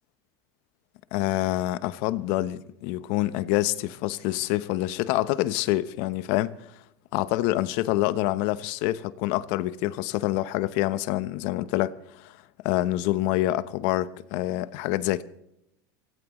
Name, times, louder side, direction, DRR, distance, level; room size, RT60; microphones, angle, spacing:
voice 1, 1.1-6.6 7.1-12.4 12.6-15.2, left 16 dB, 60° left, 1.0 m, -26 dB
25.0 x 18.5 x 3.2 m
supercardioid pair, 125°, 10 cm